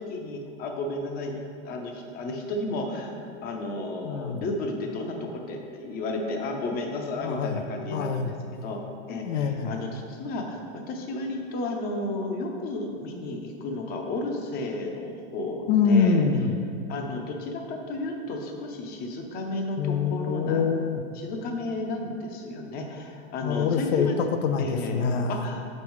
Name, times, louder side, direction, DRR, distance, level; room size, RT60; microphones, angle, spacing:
voice 1, 0.0-8.3 8.6-8.8 9.1-16.2 16.9-20.7 21.2-24.2 24.6-25.7, left 2 dB, 25° left, 2 dB, 0.6 m, -33 dB
voice 2, 4.0-4.4 7.2-7.6 7.9-8.3 9.1-9.8 15.7-16.6 19.8-21.0 23.4-25.4, left 5 dB, 85° left, 7 dB, 0.6 m, -25 dB
6.9 x 5.4 x 3.1 m, 2.3 s
supercardioid pair, 140°, 37 cm